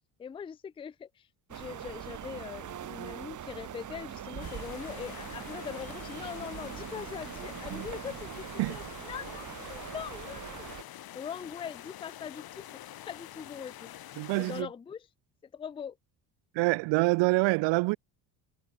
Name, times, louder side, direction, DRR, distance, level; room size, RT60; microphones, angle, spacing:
voice 1, 0.2-10.7 11.1-13.9 14.3-15.1 15.5-16.0, left 7 dB, 15° left, 0.4 m, -42 dB
sound 1, 1.5-10.8, right 10 dB, 40° right, 1.3 m, -42 dB
sound 2, 4.4-14.6, left 13 dB, 55° left, 1.2 m, -46 dB
voice 2, 14.2-14.7 16.5-18.0, right 25 dB, 75° right, 0.7 m, -26 dB
supercardioid pair, 85°, 44 cm